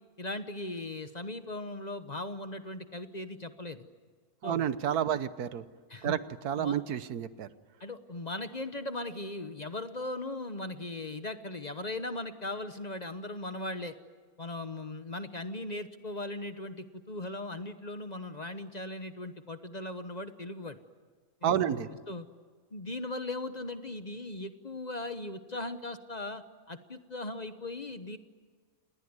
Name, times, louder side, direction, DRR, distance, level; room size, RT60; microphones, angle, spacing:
voice 1, 0.2-3.9 4.4-4.6 5.1-5.2 5.9-6.2 6.6-6.8 7.8-13.9 14.4-20.8 21.4-22.3 22.7-28.2, left 2 dB, 30° left, 10 dB, 1.0 m, -38 dB
voice 2, 4.4-5.6 6.0-7.5 21.4-21.9, right 9 dB, 90° right, 14 dB, 1.5 m, -30 dB
28.5 x 20.5 x 9.6 m, 1.5 s
omnidirectional pair, 1.6 m